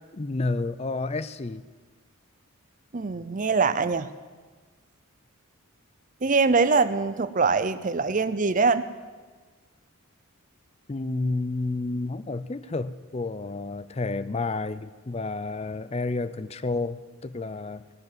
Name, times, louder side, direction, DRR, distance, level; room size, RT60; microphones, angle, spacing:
voice 1, 0.1-1.6 10.9-17.8, left 3 dB, 30° left, 14 dB, 0.5 m, -30 dB
voice 2, 2.9-4.1 6.2-8.8, right 4 dB, 35° right, 13 dB, 0.6 m, -23 dB
20.5 x 7.2 x 9.5 m, 1.4 s
head